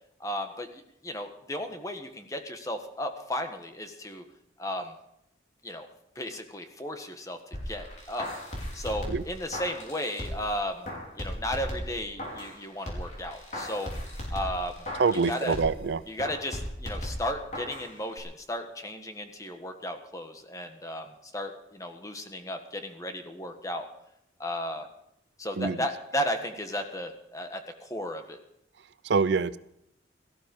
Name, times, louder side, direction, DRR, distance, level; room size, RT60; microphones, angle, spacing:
voice 1, 0.2-4.2 4.6-4.9 5.6-5.9 6.1-7.4 7.7-8.3 8.7-10.9 11.2-13.9 14.3-14.7 15.3-15.5 16.1-21.0 21.3-23.9 24.4-24.9 25.4-28.4, left 1 dB, 20° left, 6 dB, 1.5 m, -34 dB
sound 1, 7.5-10.5 10.8-12.6 12.9-15.8 16.2-17.9 18.2-18.3, equal, 40° left, 4.9 m, -37 dB
voice 2, 14.9-16.0 25.6-25.9 29.0-29.6, right 4 dB, 70° right, 16 dB, 0.5 m, -25 dB
18.0 x 14.0 x 5.4 m, 0.79 s
head